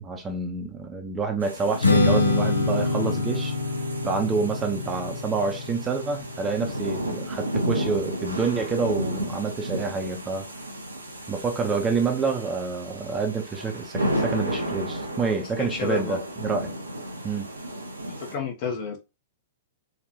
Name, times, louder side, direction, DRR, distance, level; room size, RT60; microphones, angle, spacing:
voice 1, 0.0-3.5 4.0-10.4 11.3-16.7 17.2-17.5, right 4 dB, 15° right, 0.7 m, -28 dB
sound 1, 1.4-18.3, equal, 80° right, 0.6 m, -33 dB
Strum, 1.8-8.1, left 2 dB, 80° left, 0.6 m, -26 dB
voice 2, 15.4-16.2 18.1-19.0, left 5 dB, 45° left, 0.9 m, -30 dB
3.5 x 2.4 x 2.7 m
figure-of-eight pair, 105°, 0 cm